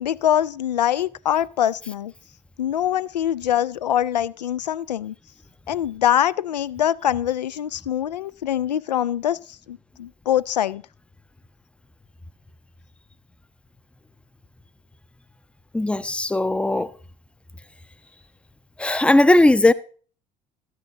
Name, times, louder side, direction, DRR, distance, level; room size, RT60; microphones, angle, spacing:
voice 1, 0.0-2.1 2.6-5.1 5.7-9.4 9.7-10.8, left 11 dB, 75° left, 0.4 m, -23 dB
voice 2, 15.7-16.9 18.8-19.7, left 1 dB, 5° left, 0.5 m, -17 dB
13.5 x 9.4 x 3.7 m
figure-of-eight pair, 65°, 21 cm